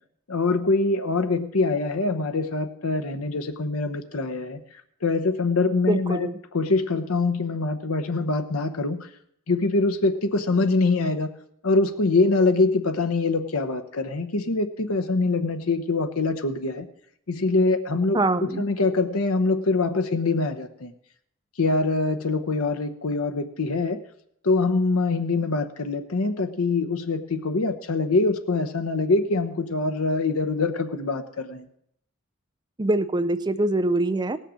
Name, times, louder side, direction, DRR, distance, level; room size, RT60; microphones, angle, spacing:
voice 1, 0.3-4.6 5.0-9.1 9.5-11.3 11.6-16.9 17.3-20.9 21.6-24.0 24.4-31.7, left 3 dB, 85° left, 9 dB, 0.9 m, -24 dB
voice 2, 5.9-6.3 18.1-18.6 32.8-34.4, right 2 dB, 20° right, 11 dB, 0.5 m, -24 dB
17.5 x 6.6 x 6.3 m, 0.72 s
head